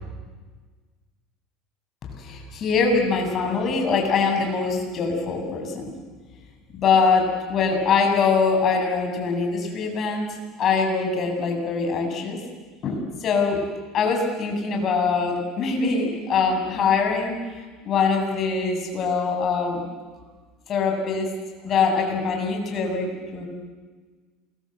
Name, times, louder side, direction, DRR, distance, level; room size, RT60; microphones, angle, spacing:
voice 1, 2.2-5.9 6.7-10.3 10.6-12.4 12.8-13.6 13.9-17.4 17.8-19.8 20.7-21.3 21.6-23.5, left 5 dB, 40° left, 3 dB, 7.7 m, -23 dB
29.0 x 23.0 x 8.1 m, 1.4 s
supercardioid pair, 110°, 0 cm